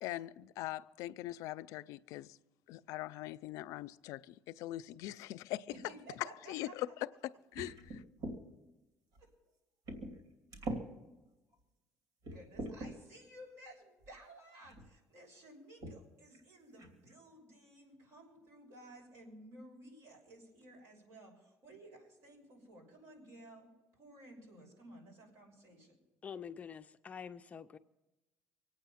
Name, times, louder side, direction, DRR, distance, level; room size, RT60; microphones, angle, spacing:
voice 1, 0.0-2.3 2.7-5.7 6.5-6.9 7.5-8.0, left 16 dB, 85° left, 0.4 m, -42 dB
voice 2, 5.7-6.9 12.3-26.0, right 1 dB, 60° right, 6.1 m, -55 dB
sound 1, 7.5-8.4 9.1-9.2 9.9-10.2 10.5-10.8 11.5-11.6 12.2-12.9 14.0-14.1 14.6-14.9 15.8-16.0 16.3-16.4 16.8-17.1, right 1 dB, 90° right, 2.9 m, -42 dB
voice 3, 26.2-27.8, left 7 dB, 25° left, 0.4 m, -46 dB
25.0 x 8.9 x 5.7 m
cardioid pair, 155°, 5 cm